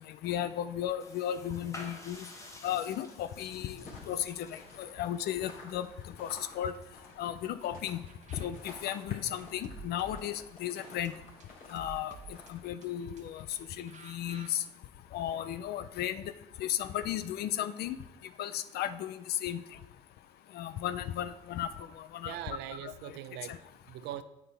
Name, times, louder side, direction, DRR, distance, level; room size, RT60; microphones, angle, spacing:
voice 1, 0.2-2.2 2.6-5.9 6.2-6.3 6.6-6.7 7.2-8.0 8.4-11.1 11.7-12.1 12.5-13.4 13.8-14.6 15.1-16.2 16.6-18.0 18.4-19.6 20.5-21.7 22.1-22.3 22.8-22.9, left 11 dB, 70° left, 13 dB, 0.6 m, -34 dB
sound 1, 1.0-7.7, left 1 dB, 20° left, 1.3 m, -52 dB
sound 2, 3.3-12.7, left 2 dB, 55° left, 3.4 m, -52 dB
sound 3, 7.6-14.5, right 6 dB, 45° right, 1.0 m, -53 dB
voice 2, 22.2-24.2, right 12 dB, 90° right, 13 dB, 0.6 m, -41 dB
9.4 x 7.9 x 3.5 m, 0.95 s
cardioid pair, 110°, 17 cm